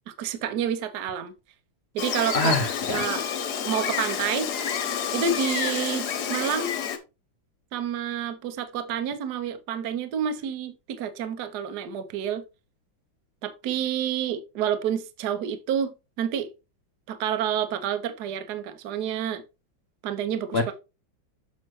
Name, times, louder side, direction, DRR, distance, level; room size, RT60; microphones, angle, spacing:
voice 1, 0.1-1.3 1.9-2.6 2.9-3.2 3.6-4.5 5.1-6.7 7.7-12.4 13.4-16.5 17.1-19.4 20.0-20.7, right 8 dB, 60° right, 1.2 m, -29 dB
Gull seagull, 2.0-7.0, left 8 dB, 60° left, 1.3 m, -29 dB
voice 2, 2.3-3.3 20.5-20.7, left 2 dB, 75° left, 0.5 m, -26 dB
7.0 x 6.1 x 3.1 m
omnidirectional pair, 2.2 m